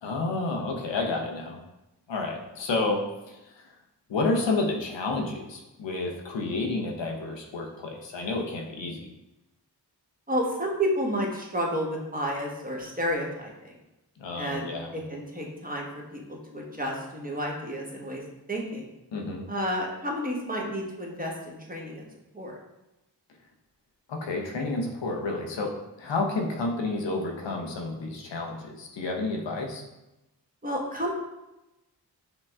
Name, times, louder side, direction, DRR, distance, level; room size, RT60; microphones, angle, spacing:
voice 1, 0.0-1.6 2.1-3.7 4.1-9.1 14.2-14.9 19.1-19.4 24.1-29.8, left 3 dB, 85° left, 1 dB, 0.7 m, -30 dB
voice 2, 10.3-13.7 14.3-14.7 15.1-15.9 16.1-16.2 16.5-18.2 18.5-18.8 19.5-22.0 22.3-22.6 30.6-31.1, equal, 20° right, -1 dB, 1.1 m, -30 dB
5.8 x 2.2 x 3.4 m, 0.97 s
cardioid pair, 40°, 43 cm